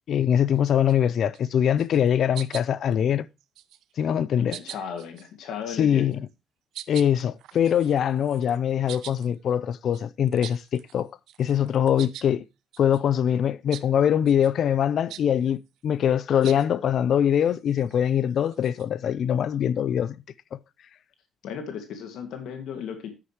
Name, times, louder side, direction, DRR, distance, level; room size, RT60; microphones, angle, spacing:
voice 1, 0.1-3.3 4.0-4.6 5.8-6.2 6.9-11.1 11.4-12.4 12.8-20.1, left 9 dB, 55° left, 0.5 m, -23 dB
sound 1, 0.5-0.9 1.3-1.5 1.8-2.1 2.3-2.9 3.4-3.9 4.5-5.3 6.1-6.3 6.7-11.0 11.3-12.3 12.7-13.0 13.7-13.9 14.3-14.5 15.1-15.3 16.4-16.7 17.3-18.9, right 12 dB, 80° right, 0.6 m, -43 dB
voice 2, 4.4-6.2 16.4-16.5 21.4-23.1, left 7 dB, 75° left, 1.9 m, -35 dB
9.9 x 9.2 x 3.0 m
cardioid pair, 130°, 0 cm